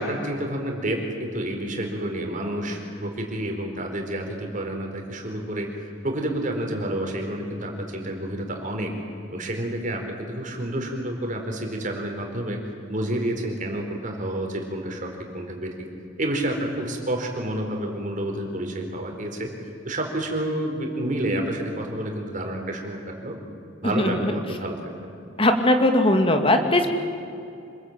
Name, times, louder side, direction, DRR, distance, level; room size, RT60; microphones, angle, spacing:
voice 1, 0.0-5.7 6.0-8.9 9.3-12.6 12.9-15.7 16.2-19.5 19.8-23.4 23.8-24.9, right 1 dB, 45° right, 3 dB, 4.3 m, -29 dB
voice 2, 24.0-24.3 25.4-26.9, left 1 dB, 30° left, 5 dB, 2.4 m, -19 dB
27.0 x 21.0 x 9.1 m, 2.6 s
head